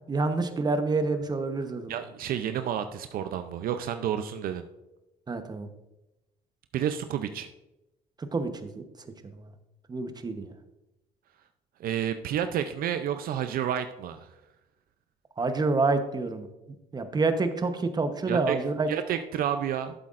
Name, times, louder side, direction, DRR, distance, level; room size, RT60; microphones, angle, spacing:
voice 1, 0.1-1.9 5.3-5.7 8.3-9.1 9.3-9.5 9.9-10.5 15.4-16.5 16.9-18.9, right 3 dB, 25° right, 8 dB, 0.9 m, -28 dB
voice 2, 1.9-4.6 6.7-7.5 11.8-14.3 18.3-18.6 18.9-19.9, right 9 dB, 65° right, 9 dB, 0.5 m, -30 dB
11.5 x 7.6 x 2.5 m, 0.96 s
cardioid pair, 95°, 16 cm